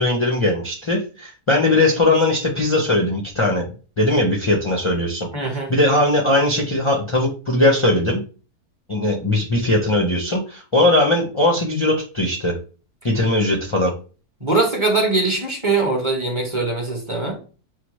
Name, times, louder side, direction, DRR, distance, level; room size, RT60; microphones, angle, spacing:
voice 1, 0.0-3.7 4.0-5.3 5.7-8.2 8.9-12.6 13.0-13.9, left 2 dB, 40° left, 0 dB, 0.4 m, -19 dB
voice 2, 5.3-5.7 14.4-17.4, right 3 dB, 25° right, 0 dB, 0.9 m, -21 dB
6.5 x 2.2 x 3.0 m, 0.36 s
omnidirectional pair, 1.6 m